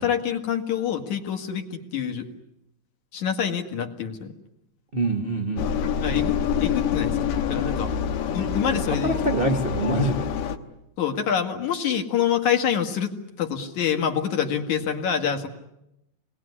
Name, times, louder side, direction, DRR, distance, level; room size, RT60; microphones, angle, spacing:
voice 1, 0.0-2.3 3.1-4.3 6.0-7.9 8.3-9.2 11.0-13.1 13.4-15.5, left 8 dB, 65° left, 4 dB, 3.2 m, -26 dB
voice 2, 4.9-5.7 8.4-8.7 9.0-10.3, right 2 dB, 55° right, 4 dB, 0.6 m, -25 dB
Engine, 5.6-10.6, left 8 dB, 80° left, 2.9 m, -26 dB
28.0 x 20.5 x 9.9 m, 0.87 s
omnidirectional pair, 3.8 m